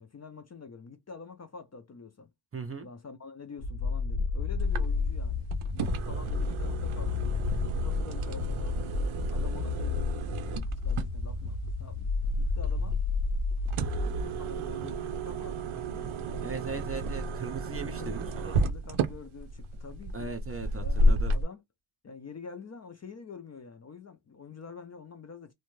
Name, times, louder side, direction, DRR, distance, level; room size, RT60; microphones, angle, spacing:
voice 1, 0.0-2.3 2.8-5.5 5.7-7.3 7.7-8.9 9.3-12.1 12.4-13.0 13.9-16.9 18.0-18.2 18.5-20.3 20.8-21.6 22.0-25.5, left 5 dB, 35° left, 0.4 m, -47 dB
voice 2, 2.5-2.9 16.4-18.6 20.1-21.4, right 4 dB, 30° right, 0.5 m, -38 dB
sound 1, 3.6-14.2, left 4 dB, 90° left, 0.7 m, -31 dB
sound 2, 4.6-21.4, right 1 dB, 80° right, 0.5 m, -33 dB
2.5 x 2.2 x 3.0 m
wide cardioid pair, 160°, 48 cm